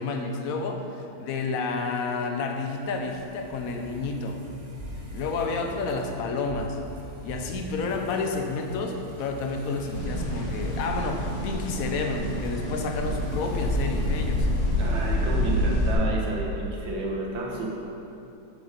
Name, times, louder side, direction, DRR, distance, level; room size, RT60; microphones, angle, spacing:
voice 1, 0.0-4.4 5.1-6.8 7.2-14.5, left 4 dB, 60° left, 3 dB, 0.9 m, -30 dB
sound 1, 2.0-15.4, right 1 dB, 40° right, 0.5 m, -42 dB
sound 2, 9.9-15.9, left 1 dB, 85° left, 2.4 m, -27 dB
voice 2, 14.8-17.7, right 2 dB, 70° right, -2 dB, 2.0 m, -31 dB
7.8 x 7.0 x 5.1 m, 2.8 s
omnidirectional pair, 2.3 m